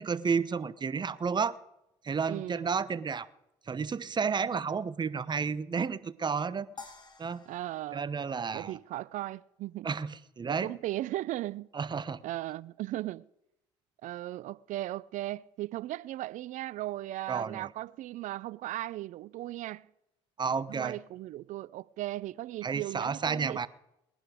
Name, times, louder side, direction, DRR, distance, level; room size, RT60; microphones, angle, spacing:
voice 1, 0.0-1.6 2.0-3.3 3.7-6.7 7.2-7.4 7.9-8.8 9.8-10.7 11.7-12.2 17.3-17.7 20.4-21.0 22.6-23.7, right 5 dB, 30° right, 0.9 m, -31 dB
voice 2, 2.3-2.7 7.5-8.1 8.5-9.9 10.4-11.7 12.2-13.3 14.0-19.9 20.7-23.7, right 15 dB, 60° right, 0.5 m, -37 dB
sound 1, 6.8-9.2, left 4 dB, 30° left, 2.6 m, -52 dB
19.5 x 11.0 x 5.0 m
hypercardioid pair, 65°, 15 cm